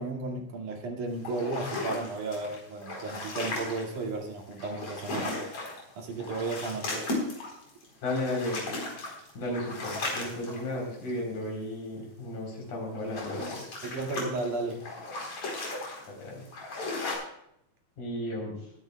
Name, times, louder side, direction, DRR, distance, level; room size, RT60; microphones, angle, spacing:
voice 1, 0.0-5.4 6.0-7.1 13.8-14.8, right 3 dB, 85° right, 1 dB, 3.7 m, -34 dB
sound 1, 1.2-4.0 4.5-5.9 6.1-11.2 12.8-17.1, left 2 dB, 60° left, 5.3 m, -36 dB
voice 2, 8.0-8.6 9.4-13.7 16.1-16.4 18.0-18.6, left 1 dB, 80° left, 0 dB, 5.3 m, -34 dB
22.0 x 10.5 x 2.3 m, 0.74 s
omnidirectional pair, 3.4 m